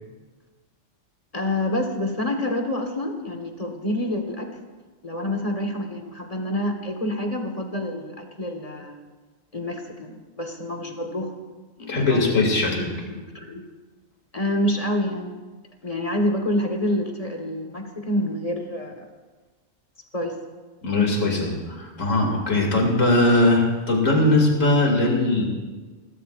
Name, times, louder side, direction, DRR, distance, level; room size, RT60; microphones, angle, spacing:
voice 1, 1.3-4.5 5.0-9.0 9.5-11.3 11.8-13.7 14.3-15.3 15.8-19.0 20.1-20.4, left 1 dB, 30° left, 4 dB, 1.5 m, -28 dB
voice 2, 11.9-12.9 20.8-25.5, left 2 dB, 90° left, 0 dB, 2.9 m, -20 dB
29.0 x 12.5 x 2.5 m, 1.3 s
omnidirectional pair, 1.3 m